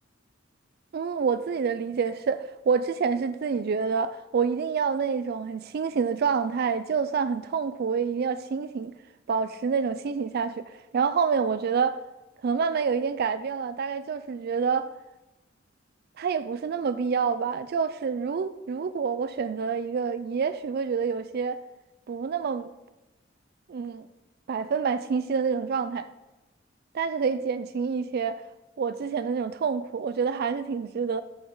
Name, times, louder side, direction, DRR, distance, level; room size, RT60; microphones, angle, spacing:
voice 1, 0.9-8.9 9.3-12.0 12.4-14.9 16.2-21.6 22.1-22.7 23.7-24.1 24.5-26.1 26.9-28.4 28.8-31.2, right 6 dB, 55° right, 0.4 m, -27 dB
13.5 x 6.2 x 3.8 m
head